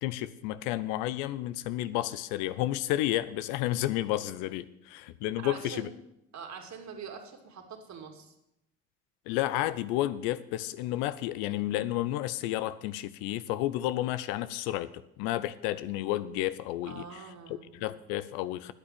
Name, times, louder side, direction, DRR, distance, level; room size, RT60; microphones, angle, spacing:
voice 1, 0.0-5.9 9.3-17.2 17.5-18.7, left 14 dB, 75° left, 15 dB, 0.7 m, -31 dB
voice 2, 5.4-5.9 6.3-8.3 16.9-17.8, right 6 dB, 50° right, 3 dB, 2.8 m, -44 dB
10.0 x 8.8 x 8.8 m, 0.84 s
hypercardioid pair, 60°, 36 cm